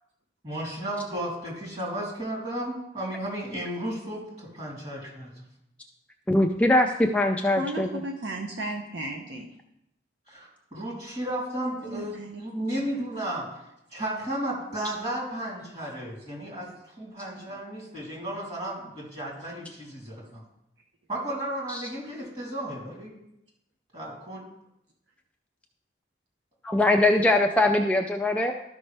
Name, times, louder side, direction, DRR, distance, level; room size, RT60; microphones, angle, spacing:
voice 1, 0.4-5.4 10.3-13.5 13.9-20.4 21.1-23.2 23.9-24.5, right 1 dB, 35° right, -4 dB, 3.1 m, -34 dB
voice 2, 6.3-8.0 21.7-21.8 26.6-28.5, left 1 dB, 5° left, 2 dB, 0.3 m, -22 dB
voice 3, 7.6-9.5 11.9-12.4 12.8-13.0 17.5-17.6, right 1 dB, 65° right, 2 dB, 0.7 m, -35 dB
13.0 x 5.3 x 3.3 m, 0.83 s
head